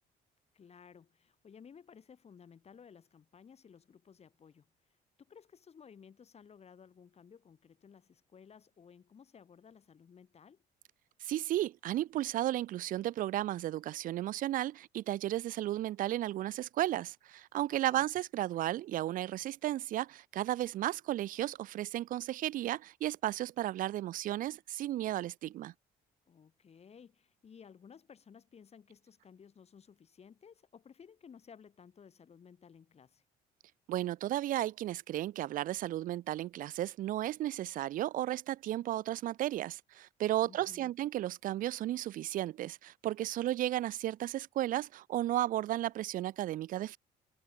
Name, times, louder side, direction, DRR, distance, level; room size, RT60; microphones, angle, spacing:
voice 1, 0.5-4.7 5.2-10.6 17.7-18.0 26.3-33.2 40.4-40.9, left 7 dB, 40° left, 5.7 m, -57 dB
voice 2, 11.2-25.7 33.9-47.0, right 14 dB, 55° right, 0.4 m, -34 dB
cardioid pair, 110°, 17 cm